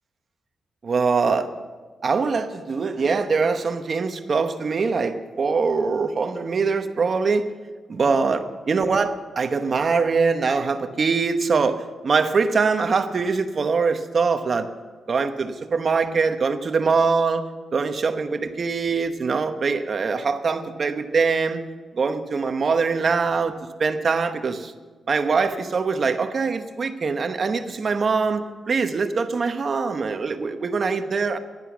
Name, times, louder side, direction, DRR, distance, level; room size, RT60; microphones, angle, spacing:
voice 1, 0.8-1.5 2.0-7.5 7.9-14.7 15.1-21.6 21.9-24.7 25.1-31.4, right 4 dB, 45° right, 8 dB, 1.0 m, -23 dB
11.0 x 11.0 x 7.2 m, 1.4 s
cardioid pair, 120°, 0 cm